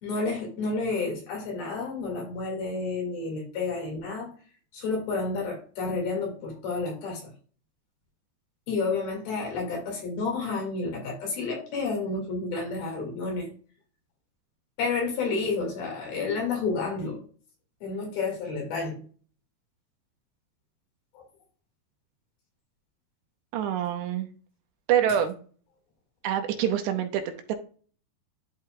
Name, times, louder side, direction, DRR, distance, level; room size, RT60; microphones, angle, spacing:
voice 1, 0.0-4.3 4.7-7.3 8.7-13.5 14.8-17.2 17.8-19.0 21.1-21.3, left 4 dB, 60° left, 0 dB, 3.8 m, -30 dB
voice 2, 23.5-24.3 24.9-25.3 26.2-27.6, right 9 dB, 85° right, 6 dB, 3.0 m, -26 dB
12.5 x 4.4 x 2.3 m, 0.41 s
omnidirectional pair, 5.1 m